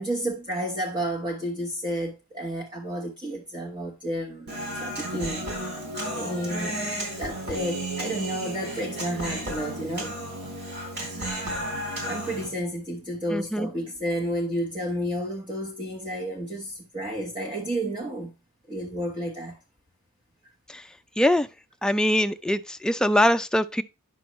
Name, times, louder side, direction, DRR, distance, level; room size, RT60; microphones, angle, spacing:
voice 1, 0.0-5.5 6.1-6.9 7.2-10.2 12.1-18.3 18.7-19.6, equal, 20° right, 1.3 m, -31 dB
Human voice, 4.5-12.5, right 1 dB, 55° right, 3.8 m, -33 dB
voice 2, 13.3-13.7 20.7-20.8 21.2-21.5 21.8-23.8, left 1 dB, 5° left, 0.3 m, -23 dB
10.0 x 6.1 x 3.1 m
head